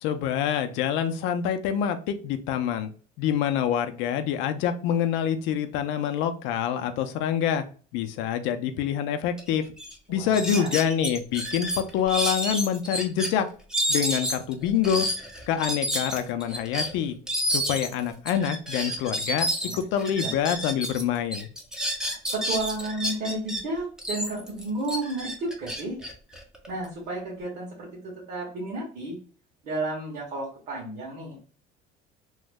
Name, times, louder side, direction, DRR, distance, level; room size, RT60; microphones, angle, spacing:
voice 1, 0.0-2.9 3.2-7.6 7.9-9.7 10.1-13.5 13.9-15.1 15.5-17.2 17.5-19.5 19.7-21.5, left 9 dB, 75° left, 8 dB, 0.5 m, -26 dB
sound 1, 9.4-9.5 9.8-9.9 10.3-13.3 13.7-21.0 21.3-23.6 24.0-26.9, equal, 5° right, 0.5 m, -30 dB
voice 2, 10.1-10.8 19.6-19.8 20.2-20.3 22.0-26.0 26.7-29.2 29.6-31.4, right 2 dB, 55° right, -5 dB, 1.4 m, -32 dB
3.0 x 2.1 x 3.4 m, 0.40 s
cardioid pair, 160°, 20 cm